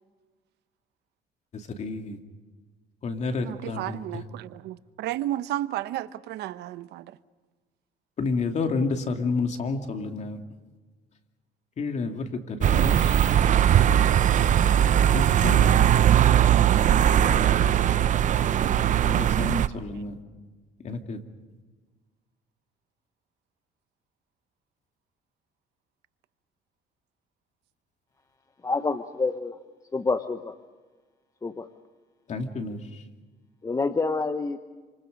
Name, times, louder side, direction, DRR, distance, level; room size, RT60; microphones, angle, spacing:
voice 1, 1.8-2.2 3.0-4.2 8.2-10.4 11.8-13.8 15.1-15.8 19.0-20.1 20.8-21.2 32.3-33.0, left 3 dB, 45° left, 2.6 m, -30 dB
voice 2, 3.4-7.2, right 14 dB, 80° right, 0.8 m, -33 dB
sound 1, 12.6-19.7, right 10 dB, 50° right, 0.7 m, -20 dB
voice 3, 28.6-29.6 29.9-30.5 31.4-31.7 33.6-34.6, left 3 dB, 20° left, 0.9 m, -27 dB
28.0 x 26.5 x 5.3 m
cardioid pair, 110°, 17 cm